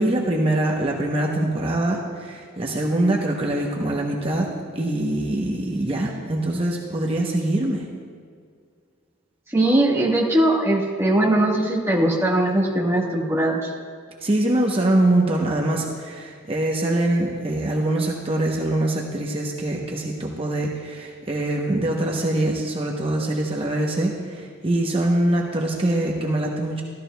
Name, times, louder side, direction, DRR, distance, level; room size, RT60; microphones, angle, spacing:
voice 1, 0.0-7.9 14.2-26.8, right 1 dB, 30° right, -1 dB, 0.8 m, -23 dB
voice 2, 9.5-13.7, right 1 dB, 15° right, -2 dB, 1.3 m, -20 dB
13.5 x 13.5 x 2.2 m, 2.1 s
head